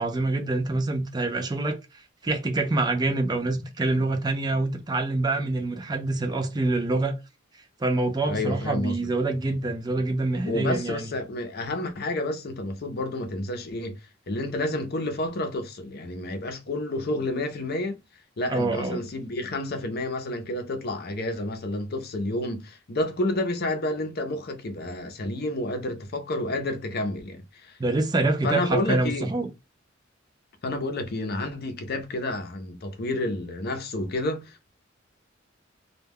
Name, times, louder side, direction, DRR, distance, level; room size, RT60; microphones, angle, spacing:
voice 1, 0.0-7.2 7.8-11.1 18.5-19.0 27.8-29.5, right 2 dB, 20° right, 0.4 m, -26 dB
voice 2, 8.2-8.9 10.4-14.0 14.3-18.0 18.4-27.8 28.4-29.3 30.6-34.7, left 1 dB, 55° left, 0.6 m, -30 dB
2.2 x 2.2 x 3.3 m
head